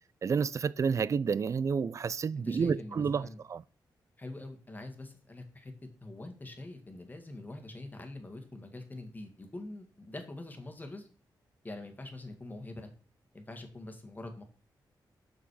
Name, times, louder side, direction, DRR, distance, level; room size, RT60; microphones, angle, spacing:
voice 1, 0.2-3.6, right 6 dB, 40° right, 0.3 m, -30 dB
voice 2, 2.4-3.4 4.2-5.7 6.0-11.1 11.6-12.9 13.3-14.4, left 2 dB, 20° left, 1.7 m, -44 dB
6.3 x 6.0 x 4.8 m
cardioid pair, 85°, 8 cm